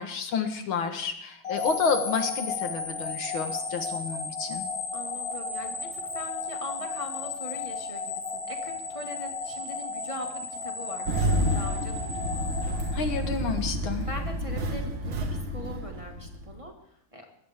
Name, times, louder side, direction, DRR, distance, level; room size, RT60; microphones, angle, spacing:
voice 1, 0.0-4.6 12.9-14.0, left 5 dB, 75° left, 7 dB, 2.3 m, -30 dB
sound 1, 1.4-13.6, left 4 dB, 60° left, 3.6 m, -34 dB
voice 2, 4.9-12.5 14.1-16.7 17.1-17.3, equal, 15° right, 1 dB, 1.9 m, -41 dB
Engine starting, 11.1-16.6, equal, 70° right, 2.3 m, -29 dB
21.0 x 15.5 x 3.7 m, 0.73 s
omnidirectional pair, 2.3 m